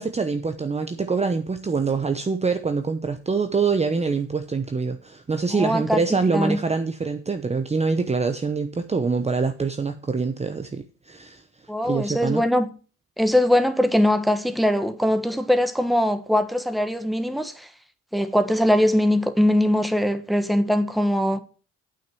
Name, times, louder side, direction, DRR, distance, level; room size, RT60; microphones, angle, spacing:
voice 1, 0.0-11.4 11.8-12.4, right 4 dB, 20° right, 0.8 m, -25 dB
voice 2, 5.5-6.0 6.3-6.6 11.7-12.7 13.2-17.7 18.1-21.4, left 1 dB, ahead, 1.2 m, -21 dB
8.7 x 6.1 x 7.6 m
cardioid pair, 90°, 30 cm